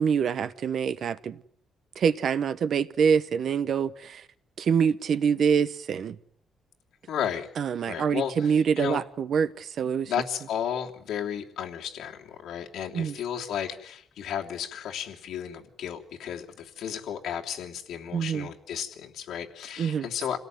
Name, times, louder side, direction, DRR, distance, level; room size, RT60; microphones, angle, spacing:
voice 1, 0.0-1.4 2.0-4.2 4.6-6.2 7.6-10.1 12.9-13.2 18.1-18.5 19.8-20.1, right 7 dB, 45° right, 1.0 m, -25 dB
voice 2, 7.1-7.5 7.9-9.0 10.1-20.4, left 9 dB, 70° left, 3.0 m, -33 dB
28.5 x 17.5 x 9.3 m
cardioid pair, 180°, 0 cm